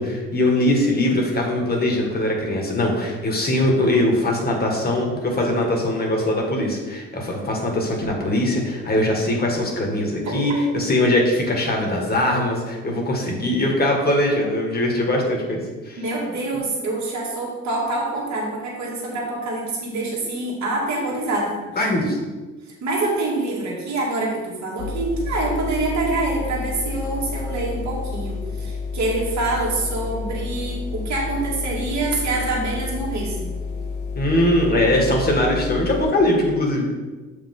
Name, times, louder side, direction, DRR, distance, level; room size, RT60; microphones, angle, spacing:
voice 1, 0.0-16.0 21.8-22.1 34.1-36.9, left 1 dB, 30° left, 0 dB, 1.9 m, -21 dB
voice 2, 10.2-10.6 16.0-22.1 22.8-33.5, right 2 dB, 65° right, -4 dB, 2.1 m, -26 dB
sound 1, 24.8-36.0, left 4 dB, 85° left, 1.0 m, -30 dB
7.1 x 5.0 x 3.9 m, 1.3 s
cardioid pair, 90°, 30 cm